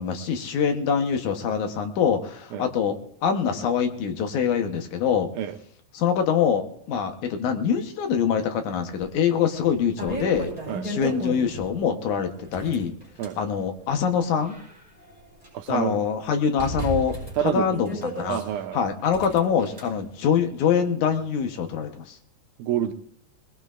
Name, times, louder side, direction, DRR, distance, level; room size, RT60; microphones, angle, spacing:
voice 1, 0.0-3.0 3.2-5.3 5.9-10.5 10.8-12.9 13.4-14.6 15.7-17.2 17.5-18.4 18.7-22.2, left 7 dB, 75° left, 5 dB, 2.6 m, -24 dB
sound 1, 9.0-9.1 9.6-11.7 12.4-13.4 14.1-15.5 15.8-15.9 16.6-18.4 19.1-19.8, right 1 dB, 10° right, 7.4 m, -34 dB
voice 2, 15.5-16.0 17.4-17.8 18.3-18.8 22.6-22.9, right 10 dB, 80° right, 7 dB, 2.2 m, -27 dB
21.0 x 20.5 x 2.5 m, 0.69 s
omnidirectional pair, 3.5 m